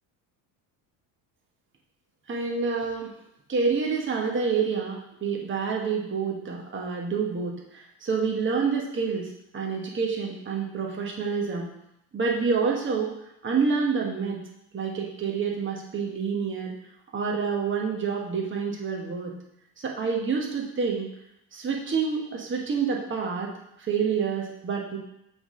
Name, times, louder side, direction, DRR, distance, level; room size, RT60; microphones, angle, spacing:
voice 1, 2.3-3.1 3.5-11.7 12.1-13.1 13.4-14.4 14.7-16.7 17.1-19.3 19.8-21.1 21.5-23.5 23.8-25.0, right 5 dB, 30° right, 0 dB, 1.3 m, -28 dB
7.7 x 3.6 x 3.8 m, 0.79 s
supercardioid pair, 80°, 43 cm